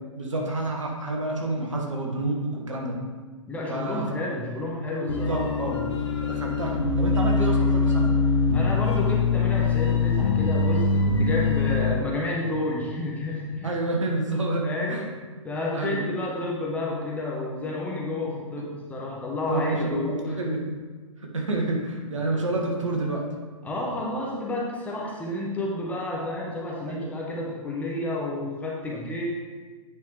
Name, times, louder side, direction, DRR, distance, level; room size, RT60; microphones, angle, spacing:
voice 1, 0.1-3.0 3.7-4.0 5.3-5.8 6.2-8.2 13.6-15.1 15.7-16.1 19.5-20.7 21.2-23.3 26.9-27.1, right 2 dB, 70° right, 0 dB, 1.4 m, -28 dB
voice 2, 3.5-5.9 8.5-13.7 14.6-15.0 15.4-20.4 23.6-29.3, left 2 dB, 10° left, -3 dB, 0.8 m, -30 dB
sound 1, 5.1-11.9, left 4 dB, 55° left, 0.9 m, -23 dB
8.8 x 5.2 x 3.3 m, 1.4 s
figure-of-eight pair, 115°, 17 cm